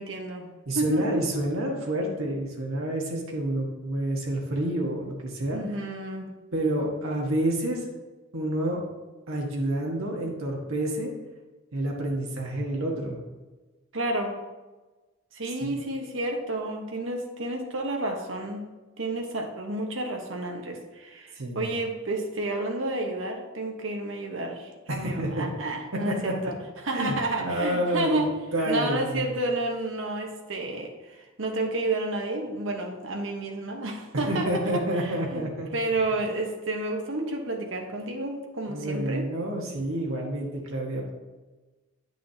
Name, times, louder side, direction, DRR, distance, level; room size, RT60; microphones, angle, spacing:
voice 1, 0.0-0.5 0.7-1.2 5.5-6.3 13.9-14.4 15.3-18.7 19.0-26.6 26.8-28.3 28.7-35.4 35.7-39.2, right 2 dB, 65° right, 2 dB, 1.1 m, -30 dB
voice 2, 0.7-5.6 6.5-7.9 8.3-8.8 9.3-11.1 11.7-13.2 15.6-15.8 21.4-21.6 24.9-25.5 25.9-26.5 26.9-29.2 34.3-35.7 38.7-41.1, right 1 dB, 85° right, -1 dB, 1.3 m, -29 dB
9.1 x 6.2 x 2.8 m, 1.2 s
head